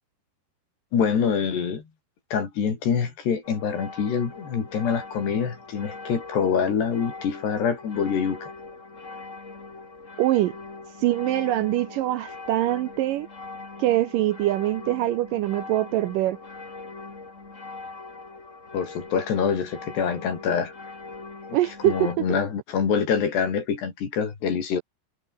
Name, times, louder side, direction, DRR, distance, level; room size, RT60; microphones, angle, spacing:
voice 1, 0.9-1.8 2.3-8.5 18.7-20.7 21.5-21.6 21.8-24.8, left 6 dB, 80° left, 6.3 m, -25 dB
sound 1, 3.4-22.2, left 3 dB, 20° left, 2.7 m, -41 dB
voice 2, 10.2-10.5 11.0-13.3 13.8-16.4 21.5-22.4, right 15 dB, 80° right, 2.0 m, -24 dB
omnidirectional pair, 4.8 m